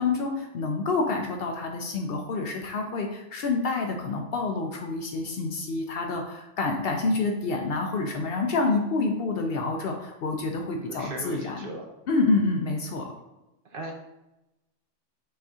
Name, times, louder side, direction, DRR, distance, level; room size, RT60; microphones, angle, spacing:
voice 1, 0.0-11.6 12.1-13.1, left 3 dB, 65° left, 3 dB, 0.7 m, -28 dB
voice 2, 10.9-11.9 13.6-13.9, right 1 dB, 55° right, 1 dB, 0.8 m, -37 dB
5.4 x 2.7 x 3.4 m, 0.95 s
omnidirectional pair, 1.3 m